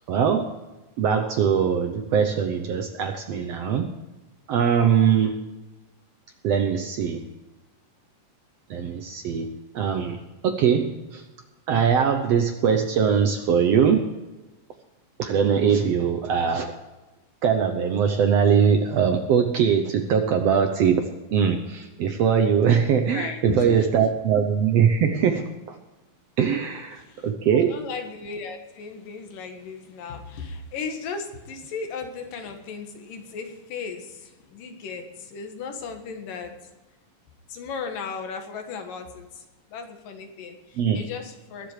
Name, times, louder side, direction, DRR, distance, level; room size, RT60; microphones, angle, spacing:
voice 1, 0.1-0.5 1.0-3.9 4.5-5.4 6.4-7.2 8.7-10.2 10.4-11.2 11.7-14.1 15.2-16.7 17.4-21.0 21.3-25.8 26.4-27.8 40.8-41.0, right 7 dB, 70° right, 6 dB, 1.6 m, -21 dB
voice 2, 23.1-24.1 26.9-36.7 37.5-41.7, left 5 dB, 80° left, 5 dB, 3.2 m, -36 dB
21.5 x 7.5 x 4.9 m, 1.1 s
omnidirectional pair, 3.8 m